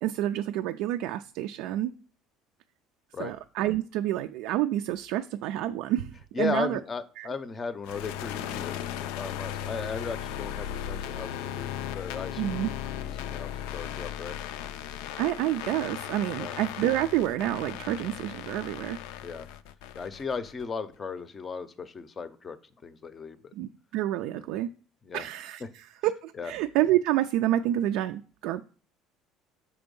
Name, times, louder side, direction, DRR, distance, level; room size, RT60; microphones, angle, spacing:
voice 1, 0.0-1.9 3.2-6.8 7.2-7.3 12.4-12.7 15.2-19.0 23.6-24.7 25.1-28.6, right 13 dB, 75° right, 7 dB, 0.3 m, -28 dB
voice 2, 6.3-12.6 12.9-14.4 16.4-16.5 19.2-19.5 20.0-22.6 22.8-23.5 24.3-24.6 25.0-25.3 26.4-26.5, left 5 dB, 25° left, 12 dB, 0.6 m, -36 dB
sound 1, 7.8-20.6, left 10 dB, 90° left, 0.5 m, -37 dB
6.1 x 4.4 x 5.3 m, 0.40 s
cardioid pair, 140°, 0 cm